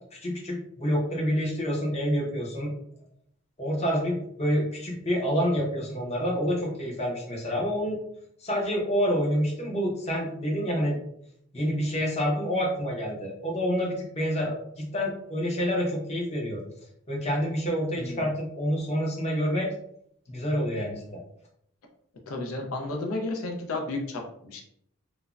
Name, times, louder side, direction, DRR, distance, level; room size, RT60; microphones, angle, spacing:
voice 1, 0.2-2.7 3.6-8.0 8.4-11.0 11.5-16.6 17.1-19.7 20.3-21.2, equal, 30° left, -2 dB, 0.6 m, -28 dB
voice 2, 22.3-24.6, left 2 dB, 90° left, 2 dB, 0.5 m, -32 dB
3.2 x 2.0 x 2.4 m, 0.71 s
head